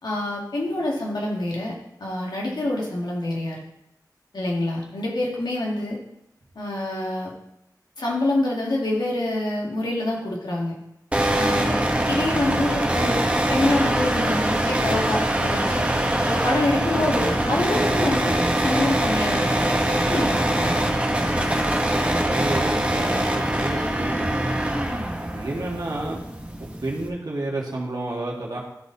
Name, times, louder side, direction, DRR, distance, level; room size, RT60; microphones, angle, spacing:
voice 1, 0.0-3.6 4.3-6.0 6.6-7.3 8.0-10.7 11.3-11.8 12.1-13.2 13.5-15.9 16.3-20.8, left 1 dB, 85° left, -3 dB, 2.1 m, -26 dB
sound 1, 11.1-27.1, right 1 dB, 15° right, 1.2 m, -23 dB
voice 2, 22.2-24.6 25.3-26.2 26.5-28.6, right 2 dB, 70° right, -3 dB, 1.9 m, -30 dB
12.5 x 4.2 x 4.1 m, 0.80 s
wide cardioid pair, 50°, 7 cm